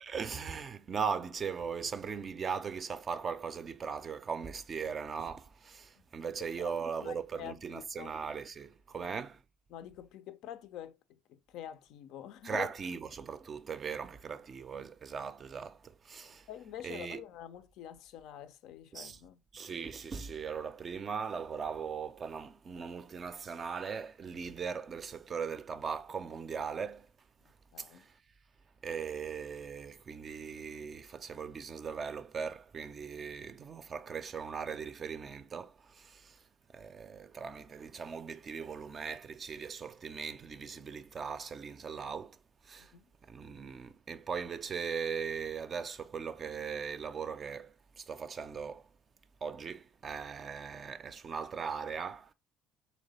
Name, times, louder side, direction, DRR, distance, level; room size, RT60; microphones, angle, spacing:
voice 1, 0.0-9.4 12.4-16.5 16.8-17.2 18.9-19.2 19.5-27.1 27.8-28.2 28.8-36.4 36.7-42.4 42.6-42.9 43.2-48.9 49.4-52.3, right 6 dB, 35° right, 0.4 m, -39 dB
voice 2, 7.0-8.2 8.9-9.1 9.7-12.7 16.5-19.4 27.7-28.1 42.8-43.0, left 11 dB, 60° left, 0.4 m, -46 dB
3.2 x 3.1 x 4.0 m
hypercardioid pair, 60°, 0 cm